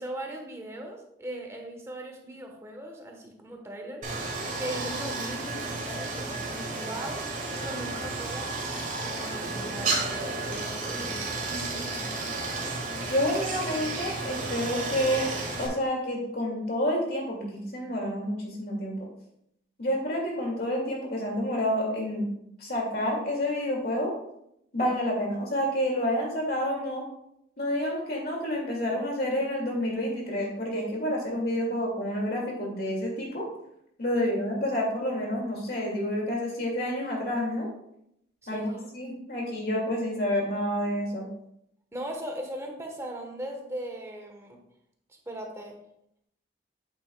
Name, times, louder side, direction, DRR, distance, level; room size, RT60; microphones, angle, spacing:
voice 1, 0.0-4.3 4.6-8.6 9.0-12.2 25.2-25.3 34.2-34.5 38.4-38.9 41.9-44.6 45.1-45.8, right 1 dB, 15° right, 2 dB, 1.0 m, -39 dB
Stream, 4.0-15.7, right 3 dB, 45° right, 1.5 m, -32 dB
voice 2, 13.1-15.3 15.6-19.0 19.8-22.3 22.6-24.1 24.7-27.0 27.6-33.5 34.0-37.7 38.5-41.3, equal, 55° left, -1 dB, 2.1 m, -29 dB
8.3 x 7.3 x 2.2 m, 0.77 s
head